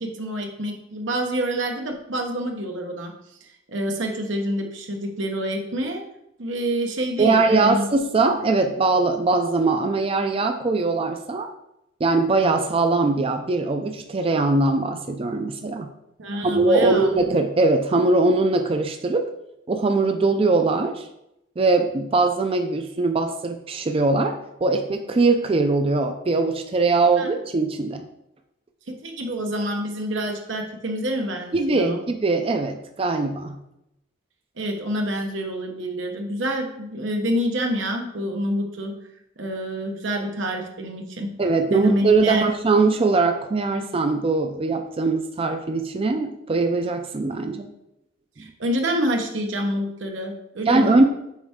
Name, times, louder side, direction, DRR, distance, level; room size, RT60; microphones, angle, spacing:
voice 1, 0.0-3.1 3.7-6.0 6.4-7.9 16.2-17.1 27.2-27.3 28.9-32.0 34.6-38.9 39.4-41.3 41.7-42.4 48.4-50.9, equal, 90° right, 2 dB, 1.1 m, -27 dB
voice 2, 7.2-11.5 12.0-15.9 16.4-19.3 19.7-21.1 21.6-28.0 31.5-33.6 41.4-47.7 50.7-51.0, right 3 dB, 30° right, 6 dB, 0.4 m, -21 dB
7.2 x 4.4 x 3.6 m, 0.83 s
head